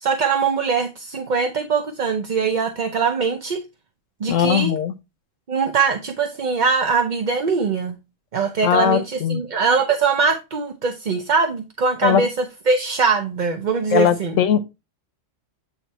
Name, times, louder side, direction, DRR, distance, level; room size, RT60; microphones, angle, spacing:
voice 1, 0.0-3.6 4.2-4.7 5.5-8.0 8.3-14.3, right 5 dB, 45° right, 0.7 m, -22 dB
voice 2, 4.3-4.9 8.6-9.4 12.0-12.2 13.9-14.7, left 8 dB, 75° left, 1.1 m, -19 dB
8.7 x 3.2 x 4.3 m
omnidirectional pair, 1.3 m